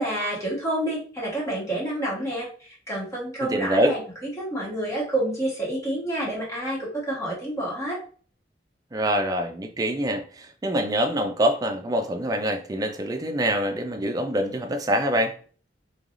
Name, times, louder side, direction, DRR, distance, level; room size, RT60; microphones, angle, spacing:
voice 1, 0.0-8.0, right 1 dB, 15° left, 1.2 m, -29 dB
voice 2, 3.4-3.9 8.9-15.3, equal, 20° right, 0.4 m, -25 dB
3.2 x 2.3 x 2.4 m
head